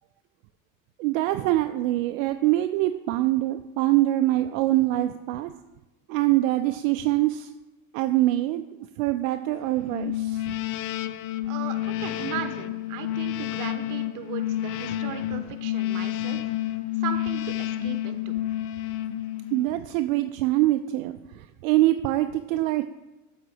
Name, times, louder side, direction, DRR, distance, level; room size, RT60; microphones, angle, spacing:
voice 1, 1.0-5.5 6.1-7.5 7.9-8.7 9.0-10.5 19.5-22.8, right 16 dB, 75° right, 8 dB, 0.5 m, -24 dB
sound 1, 9.9-19.8, left 13 dB, 55° left, 0.6 m, -30 dB
voice 2, 11.5-16.5 17.0-18.3, right 9 dB, 50° right, 8 dB, 1.1 m, -37 dB
7.4 x 4.0 x 6.5 m, 1.0 s
supercardioid pair, 100°, 40 cm